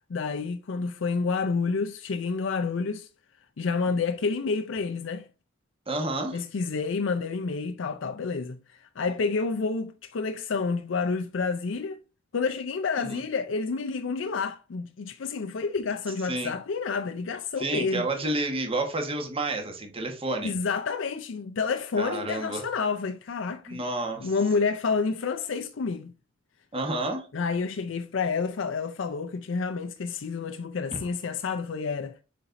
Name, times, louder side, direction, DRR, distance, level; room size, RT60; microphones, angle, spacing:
voice 1, 0.1-3.1 3.6-5.3 6.3-12.0 12.3-18.1 20.4-23.8 24.2-26.1 27.3-32.2, left 4 dB, 70° left, 0.5 m, -29 dB
voice 2, 5.9-6.4 13.0-13.2 16.2-16.5 17.6-20.5 22.0-22.6 23.7-24.3 26.7-27.3, right 2 dB, 30° right, 1.3 m, -30 dB
6.9 x 5.2 x 2.6 m
head